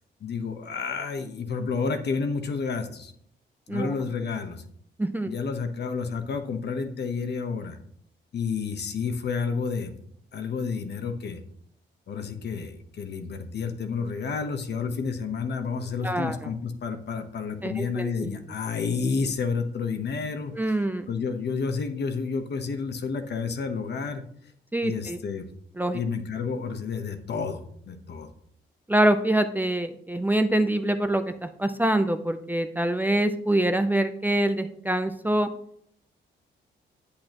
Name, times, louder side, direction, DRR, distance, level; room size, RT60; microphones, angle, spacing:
voice 1, 0.2-3.1 3.7-4.6 5.2-7.8 8.3-9.9 10.3-11.4 12.1-20.8 21.1-24.2 24.8-25.5 25.9-28.3, left 5 dB, 60° left, 7 dB, 1.1 m, -30 dB
voice 2, 5.0-5.3 16.0-16.4 17.6-18.3 20.6-21.1 24.7-25.2 25.8-26.0 28.9-35.5, right 1 dB, 10° right, 8 dB, 0.5 m, -25 dB
8.5 x 8.5 x 3.0 m, 0.66 s
cardioid pair, 110°, 20 cm